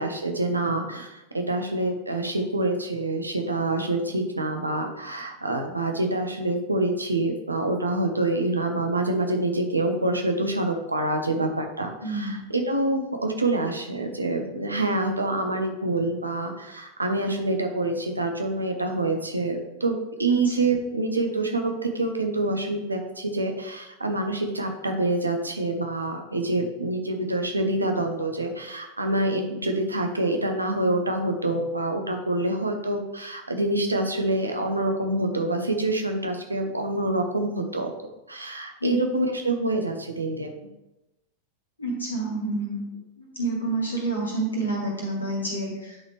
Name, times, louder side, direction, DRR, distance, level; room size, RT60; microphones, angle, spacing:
voice 1, 0.0-37.9 38.3-40.5, right 2 dB, 80° right, 4 dB, 0.9 m, -26 dB
voice 2, 12.0-12.4 20.3-20.5 38.8-39.0 41.8-42.8 43.2-46.0, right 2 dB, 80° left, -3 dB, 2.2 m, -28 dB
9.8 x 4.1 x 3.1 m, 0.96 s
figure-of-eight pair, 90°, 0 cm